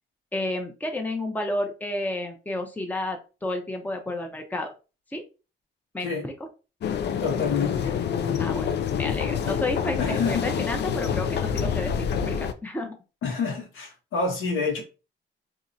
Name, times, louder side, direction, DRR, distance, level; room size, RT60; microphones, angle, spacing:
voice 1, 0.3-4.7 5.1-5.2 5.9-6.3 8.4-13.0, left 1 dB, 10° left, 0.7 m, -31 dB
sound 1, 6.8-12.5, left 7 dB, 60° left, 0.5 m, -27 dB
voice 2, 7.2-7.9 8.2-8.4 10.0-10.5 13.2-14.8, left 5 dB, 85° left, 1.5 m, -28 dB
3.7 x 2.9 x 2.6 m
cardioid pair, 90°, 20 cm